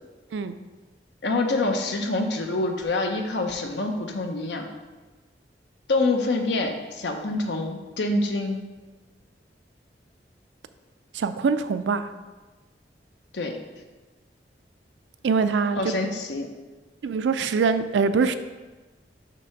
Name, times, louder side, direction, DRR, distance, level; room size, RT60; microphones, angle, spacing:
voice 1, 1.2-4.7 5.9-8.6 13.3-13.6 15.8-16.5, left 2 dB, 75° left, 4 dB, 0.7 m, -26 dB
voice 2, 11.1-12.1 15.2-15.8 17.0-18.3, right 5 dB, 85° right, 11 dB, 0.4 m, -23 dB
6.0 x 3.3 x 5.8 m, 1.2 s
head